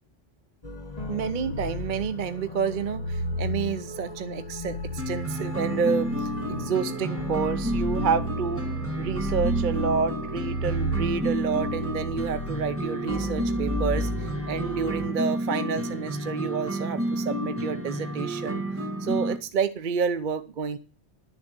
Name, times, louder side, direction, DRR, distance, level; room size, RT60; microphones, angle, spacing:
sound 1, 0.6-15.1, equal, 35° left, 1.5 m, -33 dB
voice 1, 1.1-8.6 9.0-18.6 19.0-20.8, right 6 dB, 50° right, 11 dB, 0.8 m, -29 dB
sound 2, 5.0-19.4, right 1 dB, 10° right, 1.7 m, -31 dB
11.0 x 7.1 x 7.9 m, 0.35 s
omnidirectional pair, 1.2 m